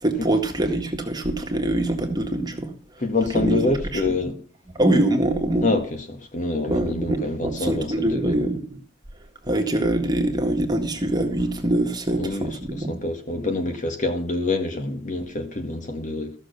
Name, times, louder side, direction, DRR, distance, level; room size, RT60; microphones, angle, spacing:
voice 1, 0.0-2.7 3.3-3.6 3.9-4.2 4.8-5.7 6.6-8.8 9.4-13.0, right 1 dB, 20° right, 1.8 m, -24 dB
voice 2, 3.0-4.4 5.6-5.8 6.1-8.4 12.1-12.5 12.8-16.3, left 2 dB, 40° left, 1.9 m, -26 dB
14.0 x 6.7 x 6.9 m
head